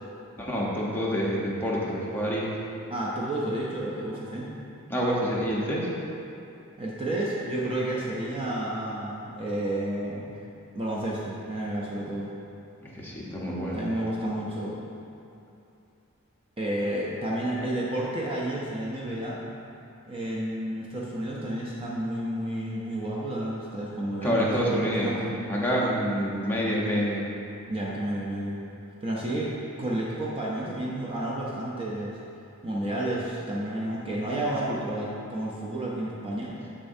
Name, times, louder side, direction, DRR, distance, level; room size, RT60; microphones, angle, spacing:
voice 1, 0.4-2.5 4.9-5.9 12.9-13.8 24.2-25.1 25.5-27.2, equal, 10° left, -6 dB, 1.0 m, -27 dB
voice 2, 2.9-4.5 6.8-10.2 10.7-12.3 13.7-14.8 16.6-19.4 20.1-25.3 27.7-28.6 29.0-32.2 32.6-36.5, right 1 dB, 25° right, -5 dB, 0.6 m, -31 dB
7.4 x 6.6 x 2.7 m, 2.8 s
head